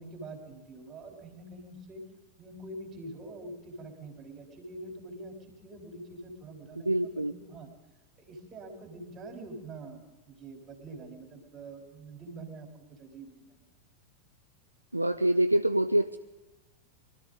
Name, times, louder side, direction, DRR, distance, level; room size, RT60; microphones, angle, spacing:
voice 1, 0.0-2.0 2.4-7.7 8.2-13.5, right 2 dB, 25° right, 2 dB, 3.4 m, -45 dB
voice 2, 6.9-7.3 14.9-16.2, right 1 dB, 85° right, 8 dB, 0.4 m, -25 dB
23.5 x 13.0 x 3.8 m, 1.1 s
figure-of-eight pair, 90°, 0 cm